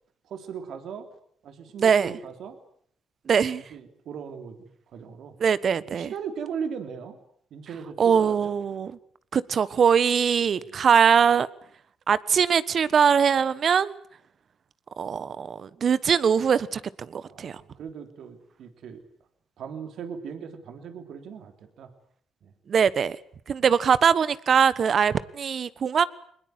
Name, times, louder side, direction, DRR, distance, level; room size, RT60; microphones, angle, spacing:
voice 1, 0.2-1.1 1.4-2.6 3.3-5.3 5.9-7.2 7.5-8.5 10.6-10.8 17.2-19.0 19.6-21.9 22.4-22.5 25.1-25.3, right 7 dB, 70° right, 3.7 m, -38 dB
voice 2, 1.8-2.1 3.3-3.6 5.4-6.1 8.0-8.9 9.3-11.5 12.1-14.0 15.0-16.8 17.1-17.6 22.7-23.2 23.5-26.1, right 7 dB, 50° right, 1.2 m, -22 dB
22.0 x 20.5 x 9.5 m
cardioid pair, 90°, 0 cm